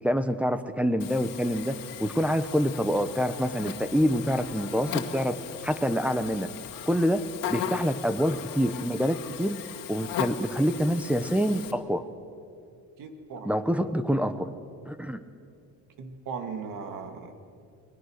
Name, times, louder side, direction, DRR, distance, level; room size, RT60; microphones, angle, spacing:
voice 1, 0.0-5.4 5.6-6.5 6.9-9.6 9.9-12.0 13.4-14.5 14.9-15.2, equal, 5° right, 11 dB, 0.8 m, -26 dB
Buzz, 1.0-11.7, left 9 dB, 80° left, 2.0 m, -38 dB
voice 2, 13.0-13.6 16.0-17.3, right 5 dB, 70° right, 6 dB, 2.6 m, -38 dB
29.5 x 20.0 x 6.5 m, 2.4 s
cardioid pair, 155°, 33 cm